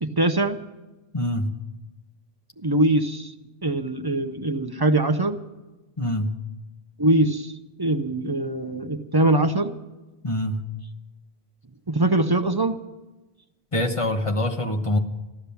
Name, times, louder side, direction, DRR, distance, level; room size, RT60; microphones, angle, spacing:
voice 1, 0.0-0.6 2.6-3.3 3.6-5.4 7.0-7.5 7.8-9.7 11.9-12.8, right 2 dB, 25° right, 7 dB, 0.6 m, -22 dB
voice 2, 1.1-1.5 6.0-6.3 10.2-10.6 13.7-15.0, left 1 dB, 30° left, 3 dB, 1.1 m, -24 dB
15.0 x 12.0 x 7.0 m, 1.1 s
omnidirectional pair, 1.1 m